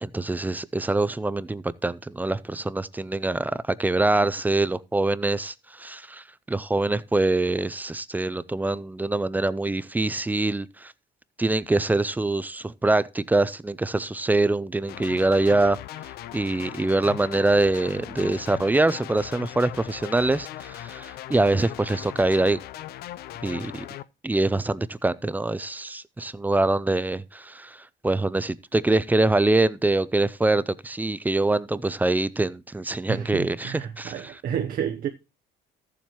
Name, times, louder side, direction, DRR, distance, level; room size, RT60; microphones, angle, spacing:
voice 1, 0.0-10.9 11.4-15.8 16.3-22.6 23.4-23.9 24.2-34.4, right 2 dB, 10° right, 0.4 m, -24 dB
sound 1, 14.9-24.0, left 14 dB, 65° left, 0.5 m, -39 dB
voice 2, 33.1-35.1, right 9 dB, 55° right, 0.9 m, -30 dB
13.5 x 7.2 x 3.0 m
cardioid pair, 110°, 17 cm